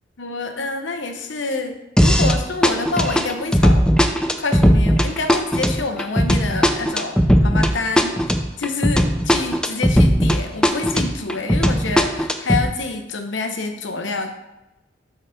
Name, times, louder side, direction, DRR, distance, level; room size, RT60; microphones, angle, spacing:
voice 1, 0.2-8.2 8.6-14.3, left 3 dB, 70° left, 6 dB, 0.8 m, -27 dB
sound 1, 2.0-2.4 2.6-10.4 10.6-12.6, equal, 5° left, 0.5 m, -17 dB
6.5 x 4.1 x 6.4 m, 0.98 s
head